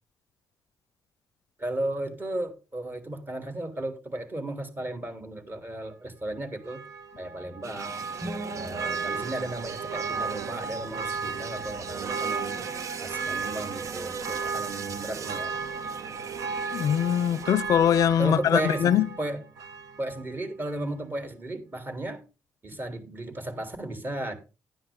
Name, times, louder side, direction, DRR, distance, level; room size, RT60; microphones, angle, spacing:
voice 1, 1.6-6.8 7.2-8.0 8.5-12.6 13.0-15.5 18.0-19.4 20.0-22.2 22.6-24.3, right 1 dB, 30° right, 3.5 m, -34 dB
Church bell, 6.6-20.3 20.7-20.8, right 5 dB, 80° right, 1.2 m, -35 dB
sound 1, 7.6-17.5, right 6 dB, 60° right, 0.8 m, -39 dB
sound 2, 8.2-10.4, equal, 15° right, 1.7 m, -42 dB
voice 2, 16.7-19.1, left 9 dB, 65° left, 0.4 m, -22 dB
11.5 x 9.8 x 3.7 m
supercardioid pair, 65°, 6 cm